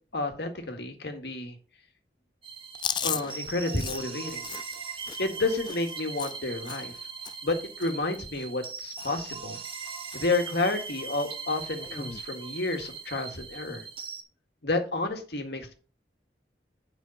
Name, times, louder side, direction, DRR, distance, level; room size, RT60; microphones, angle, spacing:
voice 1, 0.1-1.5 3.0-4.5 5.2-6.9 7.4-9.6 10.1-13.8 14.6-15.7, left 2 dB, 70° left, 5 dB, 1.8 m, -30 dB
sound 1, 2.4-14.2, right 5 dB, 30° right, 1.4 m, -40 dB
Chewing mastication, 2.7-7.0 7.2-7.5 7.8-8.7 9.0-9.3 9.5-10.2 10.6-10.8 11.8-12.2, left 8 dB, 25° left, 0.3 m, -37 dB
8.4 x 5.7 x 5.4 m, 0.38 s
head